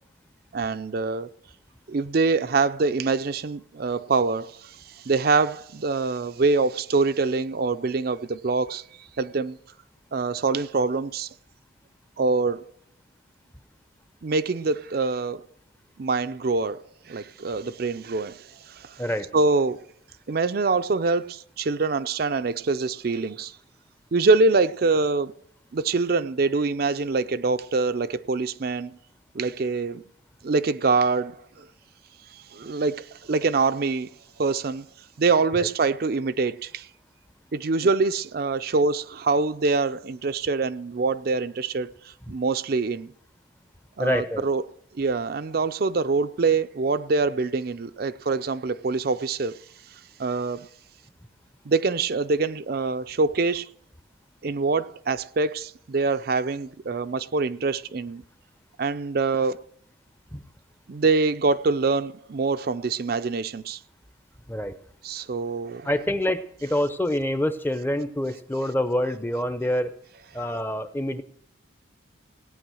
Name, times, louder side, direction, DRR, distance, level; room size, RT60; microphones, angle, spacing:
voice 1, 0.5-1.3 1.9-4.8 5.0-8.8 9.2-9.6 10.1-11.3 12.2-12.6 14.2-15.4 16.0-16.8 17.1-19.0 19.3-19.8 20.3-23.6 24.1-25.3 25.7-29.0 29.3-30.0 30.4-31.7 32.5-34.1 34.4-34.9 35.2-36.9 37.5-43.1 44.0-44.6 45.0-49.6 50.2-50.7 51.7-53.7 54.4-58.2 58.8-59.6 60.9-63.8 65.0-65.9, right 4 dB, 50° right, 0.5 m, -24 dB
voice 2, 44.0-44.4 60.3-60.4 64.5-64.8 65.8-69.9 70.3-71.2, left 1 dB, 10° left, 0.7 m, -26 dB
17.5 x 9.6 x 6.3 m
head